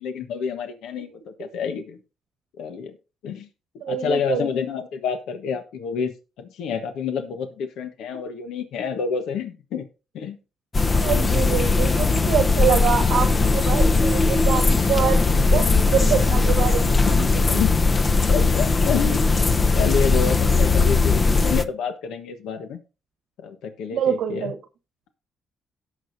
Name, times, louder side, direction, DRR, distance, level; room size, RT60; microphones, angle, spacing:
voice 1, 0.0-2.0 2.6-3.0 3.2-3.5 3.9-6.1 6.4-9.9 10.1-10.4 11.2-11.6 17.3-17.8 18.3-22.8 23.4-24.5, left 6 dB, 85° left, 7 dB, 1.3 m, -29 dB
voice 2, 3.8-4.5 10.9-17.6 23.9-24.6, right 8 dB, 80° right, 6 dB, 1.2 m, -25 dB
sound 1, 10.7-21.6, left 3 dB, 30° left, 0.7 m, -19 dB
17.5 x 6.5 x 2.7 m, 0.31 s
cardioid pair, 90°, 0 cm